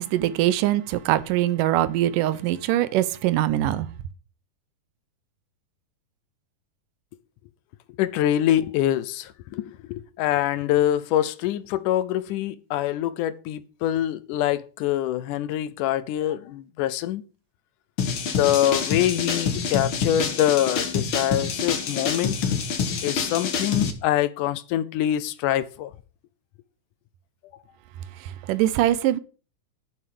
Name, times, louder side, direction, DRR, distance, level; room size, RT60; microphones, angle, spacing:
voice 1, 0.0-3.9 28.5-29.2, right 13 dB, 85° right, 2.3 m, -22 dB
voice 2, 8.0-17.2 18.3-22.4 23.0-25.9, left 12 dB, 80° left, 2.2 m, -25 dB
sound 1, 18.0-23.9, left 6 dB, 50° left, 1.8 m, -26 dB
8.4 x 7.2 x 6.8 m
omnidirectional pair, 3.8 m